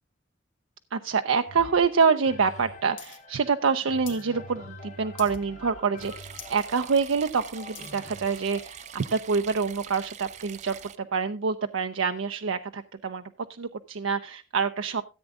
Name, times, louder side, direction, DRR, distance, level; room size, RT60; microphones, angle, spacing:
voice 1, 0.9-13.2 13.6-15.0, right 5 dB, 90° right, 8 dB, 0.6 m, -26 dB
sound 1, 1.5-11.3 11.9-12.0, left 1 dB, 40° left, 1.9 m, -47 dB
sound 2, 3.0-3.2 3.4-4.3 4.6-4.9 5.2-5.6 6.0-6.1 6.3-6.7 7.1-8.0 8.7-8.8, left 10 dB, 75° left, 1.8 m, -45 dB
sound 3, 6.0-11.0, right 8 dB, 35° right, 0.5 m, -44 dB
14.0 x 8.1 x 3.6 m, 0.30 s
head